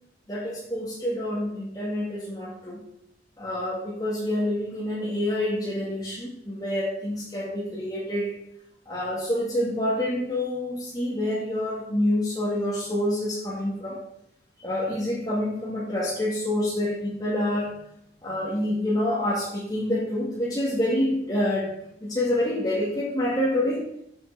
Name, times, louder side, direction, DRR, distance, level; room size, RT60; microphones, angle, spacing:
voice 1, 0.3-2.8 3.4-8.3 8.9-14.0 14.6-17.8 18.2-23.9, left 1 dB, 20° left, -8 dB, 2.2 m, -27 dB
7.9 x 7.6 x 5.0 m, 0.76 s
head